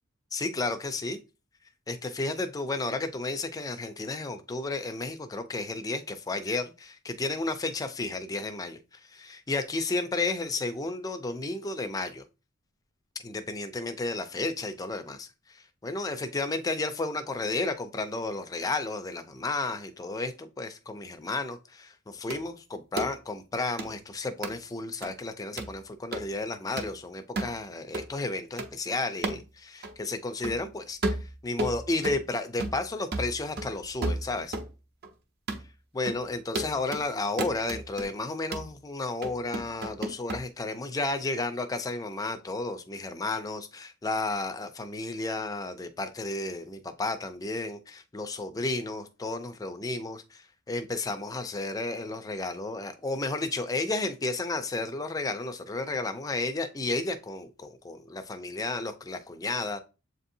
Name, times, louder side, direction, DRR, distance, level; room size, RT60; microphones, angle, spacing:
voice 1, 0.3-1.2 1.9-12.2 13.2-31.2 31.4-34.5 35.9-59.8, left 3 dB, 15° left, 0.4 m, -32 dB
sound 1, 22.3-22.4 23.0-23.1 23.8-23.9 24.4-24.6 25.0-25.1 25.6-25.8 26.1-26.3 26.8-26.9 27.4-27.6 27.9-28.1 28.6-28.7 29.2-29.5 29.8-29.9 30.4-30.6 31.0-32.2 32.6-32.9 33.1-34.7 35.0-35.1 35.5-35.7 36.1-36.2 36.6-37.1 37.4-38.1 38.5-38.7 39.2-40.4, right 2 dB, 50° right, 0.7 m, -33 dB
7.5 x 2.7 x 2.6 m
head